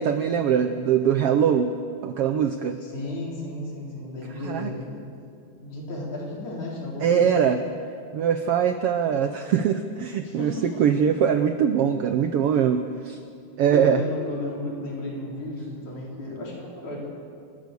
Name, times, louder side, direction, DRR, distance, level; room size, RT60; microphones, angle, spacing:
voice 1, 0.0-1.7 2.0-2.8 4.4-4.7 7.0-7.6 8.1-13.2 13.6-14.0, right 8 dB, 80° right, 8 dB, 1.3 m, -22 dB
voice 2, 2.8-5.3 5.6-7.5 10.2-10.8 13.7-17.0, left 1 dB, 70° left, -4 dB, 5.7 m, -34 dB
29.5 x 13.0 x 6.9 m, 2.4 s
omnidirectional pair, 3.5 m